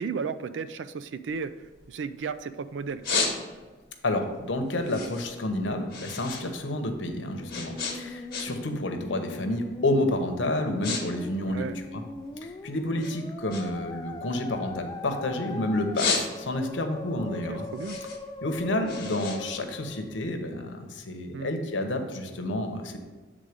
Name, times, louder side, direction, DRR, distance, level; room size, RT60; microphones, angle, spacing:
voice 1, 0.0-3.0 11.5-11.8 17.3-18.0 21.3-21.6, right 5 dB, 75° right, 13 dB, 0.4 m, -34 dB
sound 1, 1.3-2.4 2.8-3.8 4.3-6.5 6.7-8.8 9.1-9.4 10.0-10.2 10.5-11.0 11.3-12.5 13.0-15.3 15.7-16.8 17.2-20.3, left 4 dB, 60° left, 1.2 m, -33 dB
voice 2, 4.0-12.0 12.4-17.7 18.4-23.0, left 1 dB, 90° left, 5 dB, 0.9 m, -30 dB
Musical instrument, 7.2-20.2, left 2 dB, 20° left, 0.3 m, -41 dB
8.1 x 3.7 x 5.0 m, 1.3 s
head